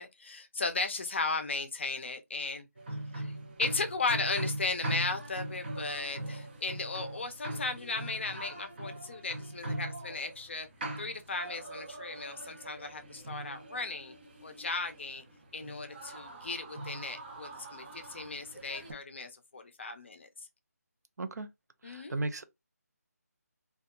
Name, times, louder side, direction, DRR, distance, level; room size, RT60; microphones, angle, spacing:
voice 1, 0.0-2.7 3.1-3.3 3.6-10.7 11.0-14.1 14.4-15.2 15.5-20.3 21.8-22.2, left 3 dB, 45° left, 0.5 m, -36 dB
sound 1, 2.8-18.9, right 1 dB, 35° right, 0.7 m, -41 dB
voice 2, 21.2-21.5 21.8-22.4, right 2 dB, 75° right, 0.5 m, -35 dB
2.7 x 2.2 x 2.2 m
figure-of-eight pair, 170°, 9 cm